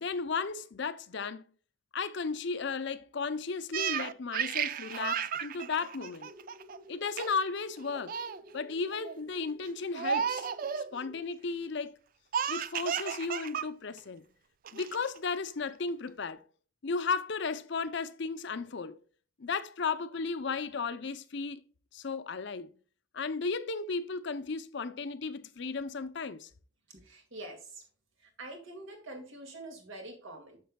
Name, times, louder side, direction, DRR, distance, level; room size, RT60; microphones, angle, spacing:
voice 1, 0.0-1.4 1.9-6.3 6.9-8.1 8.5-10.5 10.8-12.0 12.5-14.2 14.7-16.4 16.8-19.0 19.4-21.6 21.9-22.7 23.1-26.5, left 4 dB, 60° left, 0.6 m, -34 dB
Laughter, 3.7-6.8 7.2-7.5 7.8-8.4 8.9-9.2 9.9-10.9 12.3-13.7 14.0-14.1 14.7-15.2, right 8 dB, 45° right, 0.3 m, -33 dB
sound 1, 6.2-11.2, equal, 15° right, 1.3 m, -53 dB
voice 2, 26.9-27.8 28.2-30.6, right 2 dB, 70° right, 2.1 m, -45 dB
9.3 x 6.7 x 2.2 m
head